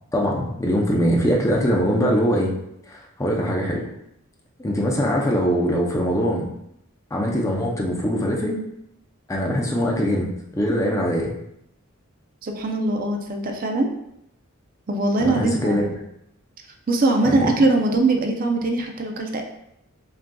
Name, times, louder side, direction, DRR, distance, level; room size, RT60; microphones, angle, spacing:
voice 1, 0.1-2.5 2.9-3.8 4.6-6.5 7.1-8.6 9.3-10.3 10.5-11.3 15.2-15.9 17.2-17.5, equal, 15° left, -2 dB, 0.5 m, -22 dB
voice 2, 12.4-13.9 14.9-15.9 16.9-19.4, right 2 dB, 40° right, 3 dB, 0.4 m, -21 dB
6.0 x 2.6 x 2.2 m, 0.79 s
head